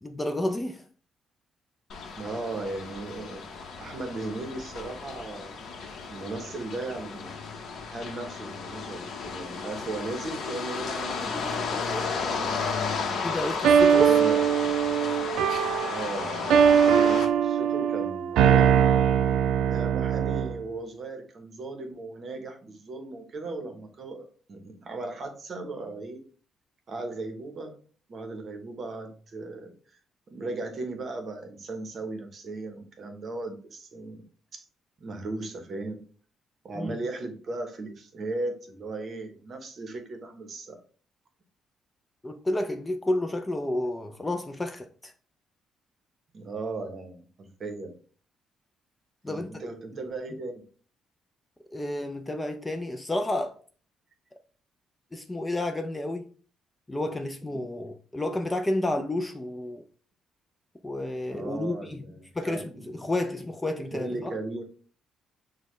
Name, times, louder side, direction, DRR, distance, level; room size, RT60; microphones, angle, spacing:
voice 1, 0.0-0.8 13.2-14.1 36.7-37.0 42.2-45.1 49.2-49.5 51.7-53.5 55.1-56.2 56.9-59.8 60.8-62.0 62.4-64.3, left 1 dB, 10° left, 0.3 m, -30 dB
sound 1, 1.9-17.3, left 5 dB, 55° left, 0.7 m, -34 dB
voice 2, 2.2-3.4 3.8-5.6 6.1-7.6 7.9-12.5 14.0-14.5 15.9-19.1 19.7-26.2 26.9-27.7 28.1-29.7 30.3-34.2 34.5-34.6 35.0-36.1 36.6-40.8 46.3-47.9 49.3-50.7 61.3-63.0 63.9-64.6, right 2 dB, 40° right, 0.8 m, -37 dB
sound 2, 13.6-20.6, right 8 dB, 85° right, 0.3 m, -21 dB
6.2 x 2.1 x 3.1 m
cardioid pair, 145°, 0 cm